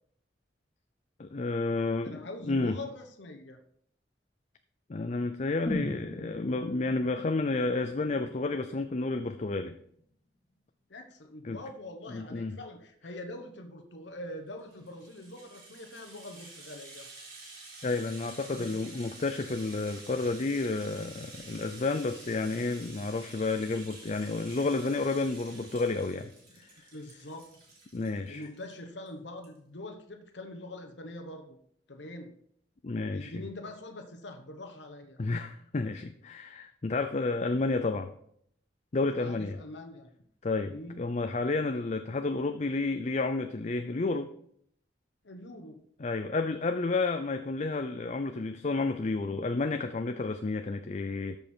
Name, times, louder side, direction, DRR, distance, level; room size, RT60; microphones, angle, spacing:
voice 1, 1.2-2.8 4.9-9.8 11.4-11.6 12.1-12.6 17.8-26.3 26.6-26.7 27.9-28.5 32.8-33.3 35.2-38.1 38.9-39.6 40.4-44.3 46.0-51.4, left 3 dB, 40° left, 8 dB, 0.5 m, -31 dB
voice 2, 2.0-3.6 10.9-17.1 18.5-19.0 26.9-27.5 28.3-31.6 31.9-32.4 33.1-35.2 39.2-40.1 40.7-41.0 45.2-45.8, left 1 dB, 75° left, 4 dB, 1.1 m, -44 dB
sound 1, 5.7-9.6 9.9-10.0, left 1 dB, 25° left, 1.5 m, -40 dB
Rattle (instrument), 14.6-28.7 29.1-29.2 29.4-29.6, right 3 dB, 55° right, 3.5 m, -50 dB
13.5 x 5.3 x 4.5 m, 0.67 s
head